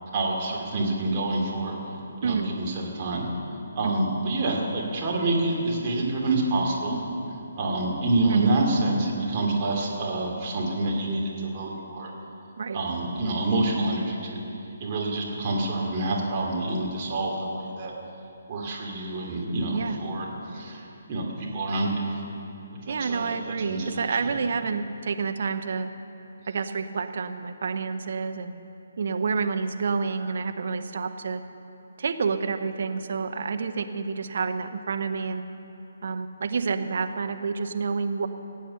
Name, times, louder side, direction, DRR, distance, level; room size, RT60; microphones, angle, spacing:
voice 1, 0.1-1.8 2.2-3.3 3.7-7.0 7.6-12.1 12.7-14.4 14.8-17.9 18.5-20.8 21.1-21.9 22.9-23.3 23.7-24.3, right 2 dB, 35° right, -2 dB, 2.9 m, -27 dB
voice 2, 22.9-25.9 26.5-28.5 29.0-31.4 32.0-35.4 36.0-38.3, right 5 dB, 55° right, 8 dB, 0.9 m, -28 dB
17.5 x 8.5 x 6.6 m, 2.9 s
figure-of-eight pair, 140°, 0 cm